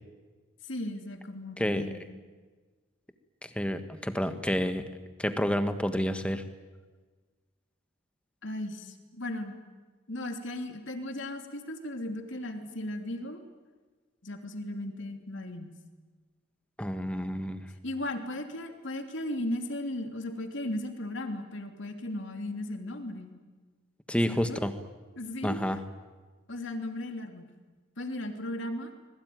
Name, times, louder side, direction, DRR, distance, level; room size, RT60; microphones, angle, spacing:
voice 1, 0.6-2.0 8.4-9.5 10.1-13.4 14.2-15.7 17.8-23.3 24.3-24.6 25.2-25.6 26.5-27.5 28.0-28.9, left 1 dB, 60° left, 5 dB, 3.0 m, -36 dB
voice 2, 3.4-4.9 5.2-6.4 16.8-17.6 24.1-24.7 25.4-25.8, equal, 5° left, 8 dB, 1.5 m, -29 dB
25.5 x 21.5 x 9.4 m, 1.4 s
head